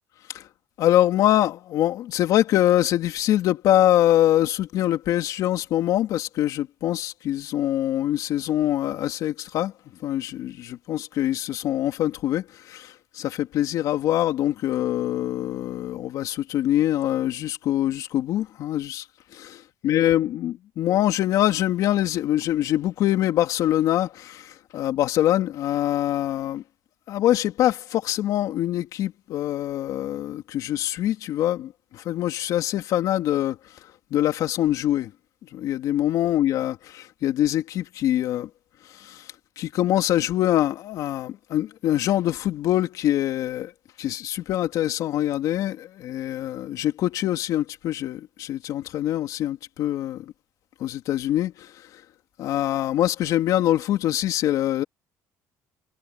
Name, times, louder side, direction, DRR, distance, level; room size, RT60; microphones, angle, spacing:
voice 1, 0.8-9.7 10.0-19.0 19.3-26.6 27.1-33.6 34.1-35.1 35.5-38.5 38.9-39.3 39.6-43.7 44.0-50.2 50.8-52.0 52.4-54.8, left 13 dB, 70° left, 3.1 m, -24 dB
cardioid pair, 110°, 6 cm